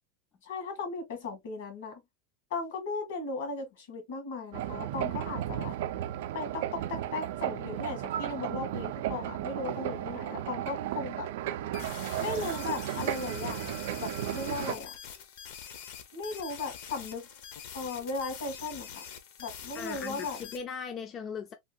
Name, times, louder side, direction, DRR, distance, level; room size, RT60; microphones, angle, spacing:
voice 1, 0.4-2.0 2.5-5.7 6.3-11.3 12.2-13.7 14.0-14.9 16.1-17.3 17.7-19.0 19.4-20.4, left 3 dB, 75° left, 1.8 m, -37 dB
sound 1, 4.5-14.7, right 12 dB, 70° right, 0.4 m, -34 dB
sound 2, 11.7-20.6, left 8 dB, 60° left, 0.8 m, -45 dB
voice 2, 19.7-21.5, left 6 dB, 30° left, 0.4 m, -38 dB
3.4 x 2.3 x 2.4 m
supercardioid pair, 155°, 0 cm